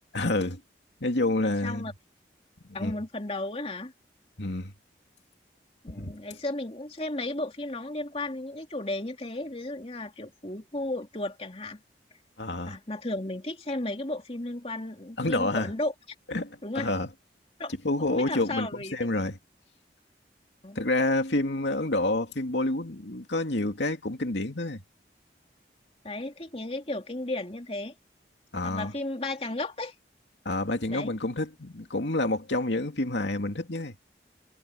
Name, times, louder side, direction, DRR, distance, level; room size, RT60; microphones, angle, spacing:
voice 1, 0.1-0.6 1.0-1.9 2.8-2.9 4.4-4.7 6.0-6.1 12.4-12.8 15.2-15.7 16.3-17.1 17.8-19.3 20.7-24.8 28.5-28.9 30.4-33.9, left 2 dB, 90° left, 2.6 m, -28 dB
voice 2, 1.4-1.9 2.7-3.9 5.8-11.8 12.7-15.9 16.6-16.9 17.6-17.7 18.0-19.1 20.6-20.8 26.0-27.9 28.6-29.9 30.9-31.1, left 2 dB, 35° left, 2.7 m, -34 dB
head